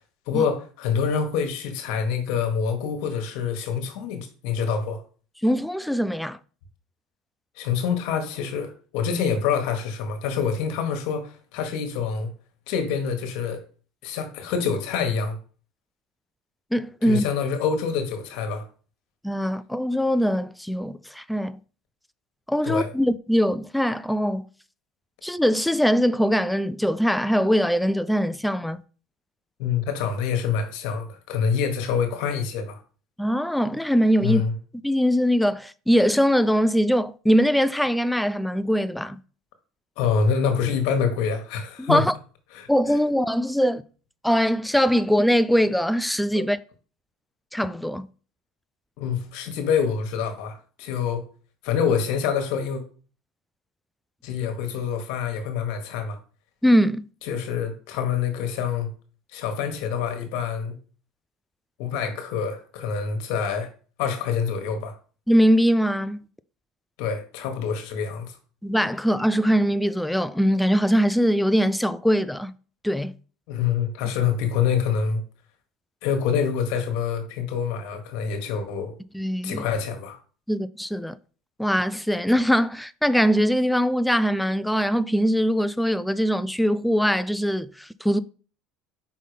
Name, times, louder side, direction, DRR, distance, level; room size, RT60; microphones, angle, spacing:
voice 1, 0.3-5.0 7.6-12.3 12.7-13.6 14.0-15.4 17.0-18.7 22.6-22.9 29.6-32.8 34.2-34.5 40.0-42.1 42.5-42.7 46.4-46.5 49.0-51.2 51.6-52.8 54.2-56.2 57.2-58.9 59.3-60.7 61.8-63.7 64.0-64.9 67.0-68.4 73.5-75.2 76.0-78.9 79.4-80.2, left 6 dB, 70° left, 1.4 m, -26 dB
voice 2, 5.4-6.4 16.7-17.2 19.2-21.6 22.5-24.4 25.2-28.8 33.2-34.4 34.8-39.2 41.8-42.1 42.7-43.8 44.2-46.6 47.5-48.1 56.6-57.0 65.3-66.2 68.6-72.5 72.8-73.1 79.1-79.6 80.5-81.2 81.6-88.2, equal, 5° left, 0.3 m, -22 dB
5.4 x 3.7 x 5.0 m
supercardioid pair, 110°, 0 cm